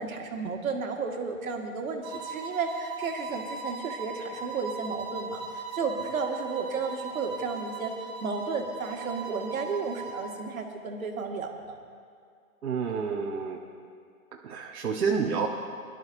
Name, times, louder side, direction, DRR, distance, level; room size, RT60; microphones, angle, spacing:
voice 1, 0.0-11.8, right 4 dB, 70° right, 2 dB, 2.0 m, -33 dB
sound 1, 2.0-10.4, right 4 dB, 20° right, 0.9 m, -39 dB
voice 2, 12.6-13.6 14.3-15.5, right 5 dB, 85° right, -1 dB, 1.3 m, -29 dB
22.5 x 12.0 x 2.7 m, 2.3 s
hypercardioid pair, 165°, 43 cm